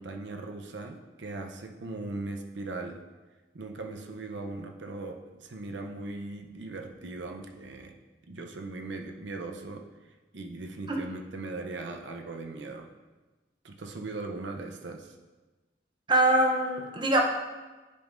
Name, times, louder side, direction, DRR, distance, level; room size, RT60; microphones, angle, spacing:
voice 1, 0.0-3.0 3.5-7.9 8.3-9.8 10.3-12.9 13.6-15.1, right 2 dB, 90° right, 4 dB, 0.7 m, -39 dB
voice 2, 16.1-17.2, right 1 dB, 25° right, 0 dB, 0.7 m, -23 dB
10.0 x 5.4 x 2.6 m, 1.2 s
head